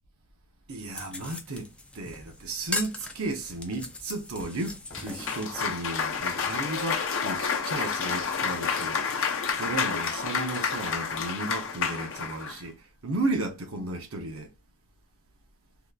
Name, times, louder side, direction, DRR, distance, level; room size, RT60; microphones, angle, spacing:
voice 1, 0.7-9.0 9.6-12.8 13.0-14.5, right 2 dB, 65° right, 0.8 m, -34 dB
sound 1, 0.9-6.2, left 2 dB, 5° left, 0.4 m, -39 dB
Cheering / Applause, 4.9-12.6, left 6 dB, 60° left, 0.7 m, -30 dB
3.4 x 2.8 x 2.4 m
head